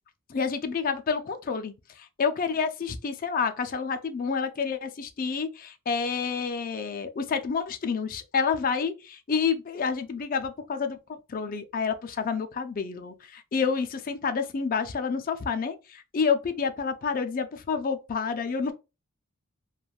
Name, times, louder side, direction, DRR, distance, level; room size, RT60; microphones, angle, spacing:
voice 1, 0.3-11.0 11.3-18.7, left 5 dB, 40° left, 0.4 m, -29 dB
3.2 x 2.2 x 2.4 m
head